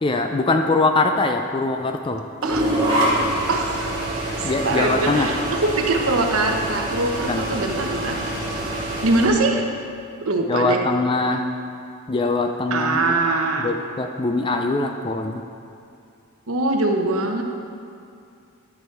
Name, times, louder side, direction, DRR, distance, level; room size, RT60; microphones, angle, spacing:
voice 1, 0.0-2.2 4.4-5.3 7.3-7.5 10.5-11.4 12.1-13.1 13.6-15.4, left 3 dB, 20° left, 5 dB, 0.3 m, -22 dB
sound 1, 2.4-9.3, right 1 dB, 20° right, 2.3 m, -25 dB
voice 2, 3.5-4.0 4.4-8.4 9.0-9.6 10.2-10.8 12.7-13.7 16.5-17.4, right 2 dB, 75° right, 3 dB, 1.0 m, -22 dB
12.0 x 6.3 x 4.6 m, 2.5 s
head